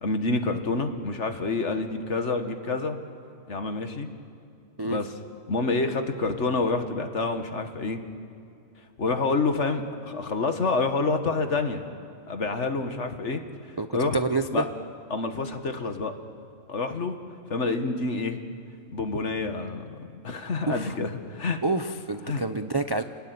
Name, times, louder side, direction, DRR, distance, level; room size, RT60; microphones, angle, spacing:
voice 1, 0.0-3.0 3.5-4.1 4.8-5.1 5.5-8.0 9.0-11.9 12.3-13.4 13.7-14.2 14.5-14.7 15.1-16.1 16.7-17.2 17.5-18.4 18.9-21.6 22.3-22.4, left 3 dB, 55° left, 7 dB, 1.9 m, -28 dB
voice 2, 13.8-14.7 20.7-20.9 21.6-23.0, right 3 dB, 30° right, 8 dB, 0.5 m, -28 dB
29.0 x 19.5 x 9.6 m, 2.4 s
omnidirectional pair, 1.5 m